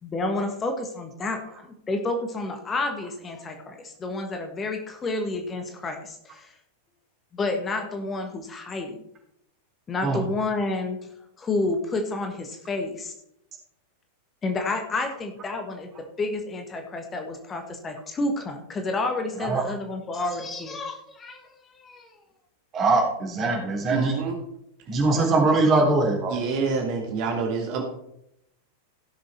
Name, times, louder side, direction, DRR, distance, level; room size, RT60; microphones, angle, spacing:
voice 1, 0.0-1.4 1.9-6.5 7.3-9.0 9.9-11.0 11.4-13.1 14.4-15.9 16.2-22.1, left 2 dB, 20° left, 5 dB, 1.4 m, -30 dB
voice 2, 22.7-24.1 24.9-26.3, right 3 dB, 25° right, -1 dB, 3.8 m, -21 dB
voice 3, 23.9-24.4 26.3-27.8, right 5 dB, 45° right, 2 dB, 2.0 m, -27 dB
16.0 x 6.8 x 4.3 m, 0.78 s
figure-of-eight pair, 90°, 0 cm